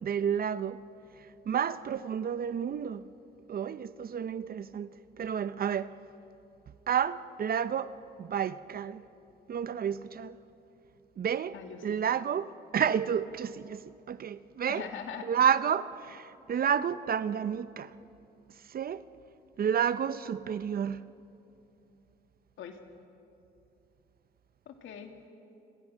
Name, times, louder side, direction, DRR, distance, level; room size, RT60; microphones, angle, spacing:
voice 1, 0.0-0.8 1.5-3.0 3.5-4.9 5.2-5.9 6.9-7.9 8.2-9.0 9.5-10.4 11.2-11.6 11.8-14.9 15.2-17.9 18.7-19.0 19.6-21.0, right 8 dB, 50° right, 0.6 m, -30 dB
voice 2, 11.5-12.0 14.7-15.3 22.6-22.8 24.7-25.3, left 7 dB, 80° left, 2.3 m, -42 dB
28.5 x 21.0 x 6.3 m
cardioid pair, 90°, 20 cm